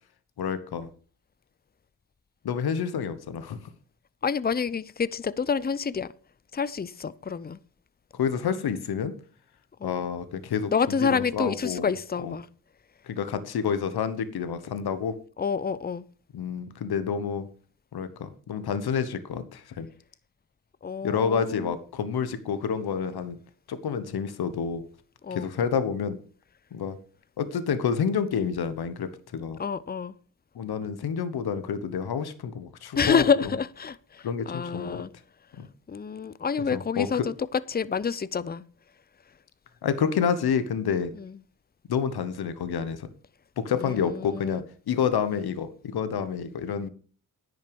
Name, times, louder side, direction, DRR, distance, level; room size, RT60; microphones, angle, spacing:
voice 1, 0.4-0.9 2.4-3.6 8.1-9.1 9.8-11.9 12.2-12.4 13.1-15.1 16.3-17.5 17.9-19.9 21.0-23.4 23.7-24.8 25.3-26.2 26.7-27.0 27.4-29.6 30.5-33.3 34.2-35.0 35.6-35.7 36.7-37.3 39.8-41.1 41.9-43.1 43.6-46.9, left 7 dB, 85° left, 1.2 m, -29 dB
voice 2, 4.2-6.1 6.5-7.6 9.8-10.0 10.7-12.5 15.4-16.0 20.8-21.7 25.2-25.5 29.6-30.1 32.9-35.1 35.9-38.6 41.1-41.4 43.8-44.6, left 6 dB, 25° left, 0.6 m, -28 dB
10.5 x 6.5 x 6.9 m
cardioid pair, 65°, 37 cm